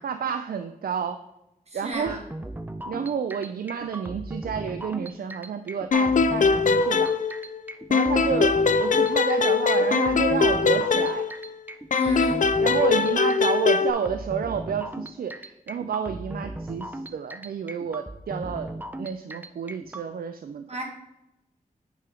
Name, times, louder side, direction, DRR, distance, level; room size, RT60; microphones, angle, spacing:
voice 1, 0.0-1.2 1.7-2.2 2.9-7.1 7.9-11.2 12.6-18.7 19.0-20.6, right 7 dB, 85° right, 9 dB, 0.4 m, -30 dB
voice 2, 1.7-2.2 11.9-12.4 20.7-20.8, right 1 dB, 45° right, 1 dB, 1.6 m, -33 dB
sound 1, 1.9-20.1, right 1 dB, 10° right, 0.4 m, -37 dB
sound 2, 5.9-7.6 7.9-11.5 11.9-13.9, left 4 dB, 60° left, 0.4 m, -22 dB
8.4 x 4.9 x 3.8 m, 0.89 s
wide cardioid pair, 105°, 15 cm